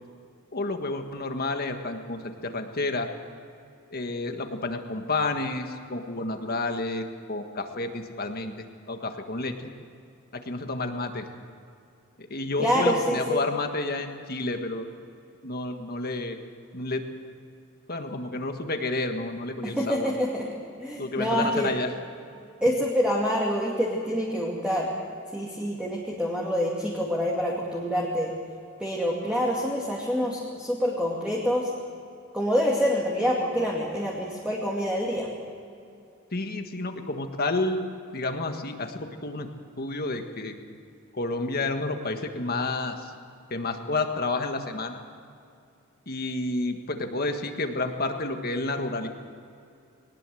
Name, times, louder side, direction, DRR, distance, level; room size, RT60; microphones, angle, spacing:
voice 1, 0.5-3.1 3.9-9.7 10.3-11.2 12.2-14.9 15.4-16.4 16.7-17.0 17.9-20.1 21.0-21.9 36.3-37.8 38.1-39.5 39.8-40.5 41.1-43.1 43.5-45.0 46.1-49.1, left 2 dB, 45° left, 5 dB, 1.6 m, -30 dB
voice 2, 12.6-13.4 19.6-20.5 20.8-21.7 22.6-24.9 25.3-28.3 28.8-31.7 32.3-35.3, equal, 5° right, -3 dB, 2.5 m, -26 dB
21.5 x 19.5 x 7.8 m, 2.5 s
head